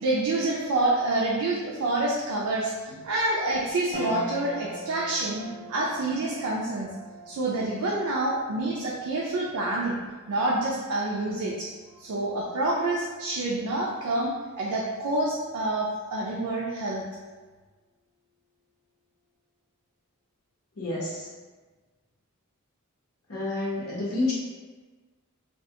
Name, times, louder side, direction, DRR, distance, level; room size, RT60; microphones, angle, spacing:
voice 1, 0.0-6.9 7.3-10.0 10.3-11.7 12.0-14.3 14.6-17.0, right 2 dB, 75° right, -4 dB, 0.4 m, -27 dB
sound 1, 3.9-13.5 14.0-14.1 15.4-15.9, equal, 35° left, 0.5 m, -42 dB
voice 2, 20.8-21.3 23.3-24.3, left 2 dB, 75° left, -7 dB, 0.9 m, -29 dB
2.3 x 2.2 x 2.8 m, 1.3 s
head